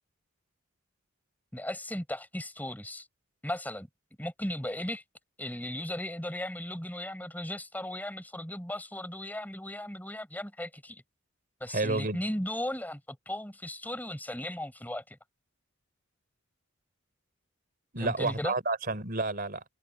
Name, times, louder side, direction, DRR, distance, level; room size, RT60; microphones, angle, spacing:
voice 1, 1.5-3.1 3.4-3.9 4.2-5.0 5.4-11.0 11.6-15.2 18.0-18.5, left 1 dB, 10° left, 4.5 m, -36 dB
voice 2, 11.7-12.2 17.9-19.7, right 2 dB, 45° right, 3.6 m, -30 dB
head